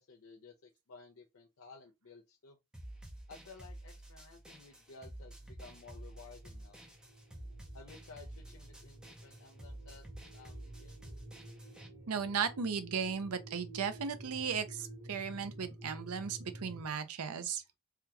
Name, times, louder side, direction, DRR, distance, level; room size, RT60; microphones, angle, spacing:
voice 1, 0.0-2.6 3.3-6.8 7.7-10.0 10.3-11.0, left 4 dB, 70° left, 0.6 m, -55 dB
sound 1, 2.7-11.9, right 1 dB, 5° right, 0.5 m, -50 dB
sound 2, 4.9-16.9, right 1 dB, 50° right, 1.1 m, -52 dB
voice 2, 12.1-17.8, right 6 dB, 90° right, 0.6 m, -36 dB
3.5 x 2.3 x 2.8 m
head